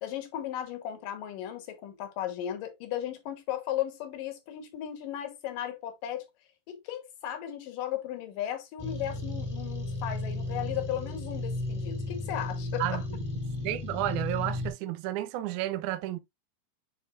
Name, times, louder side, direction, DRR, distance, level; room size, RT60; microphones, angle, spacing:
voice 1, 0.0-6.3 6.7-13.0, left 11 dB, 85° left, 3.0 m, -36 dB
sound 1, 8.8-14.7, left 2 dB, 15° left, 0.7 m, -34 dB
voice 2, 13.6-16.2, right 14 dB, 80° right, 1.9 m, -31 dB
10.0 x 3.8 x 2.5 m
omnidirectional pair, 3.8 m